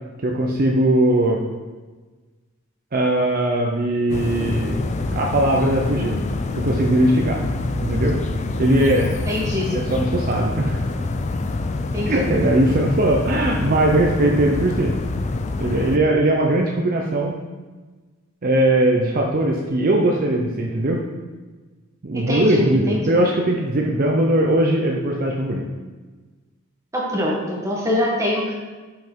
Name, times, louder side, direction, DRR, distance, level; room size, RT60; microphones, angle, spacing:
voice 1, 0.2-1.4 2.9-4.8 5.1-6.2 6.6-7.4 7.8-8.2 8.6-9.2 9.7-10.8 12.1-14.9 15.6-17.3 18.4-21.0 22.0-25.6, right 1 dB, 45° right, 0 dB, 0.6 m, -20 dB
sound 1, 4.1-16.0, left 2 dB, 35° left, 0.4 m, -26 dB
voice 2, 9.3-9.7 11.9-12.3 22.1-23.2 26.9-28.5, left 1 dB, 15° right, -4 dB, 1.5 m, -23 dB
5.7 x 5.3 x 4.5 m, 1.3 s
head